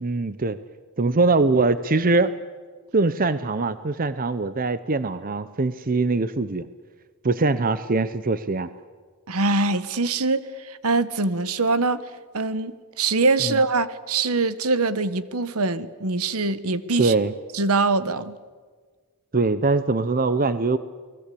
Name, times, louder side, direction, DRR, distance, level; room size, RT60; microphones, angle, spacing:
voice 1, 0.0-0.6 1.0-2.3 2.9-6.7 7.2-8.7 13.4-13.6 17.0-17.3 19.3-20.8, right 3 dB, 40° right, 14 dB, 0.8 m, -22 dB
voice 2, 9.3-12.0 12.3-17.1 17.5-18.3, right 3 dB, 75° right, 14 dB, 1.2 m, -23 dB
29.5 x 20.0 x 8.5 m, 1.5 s
head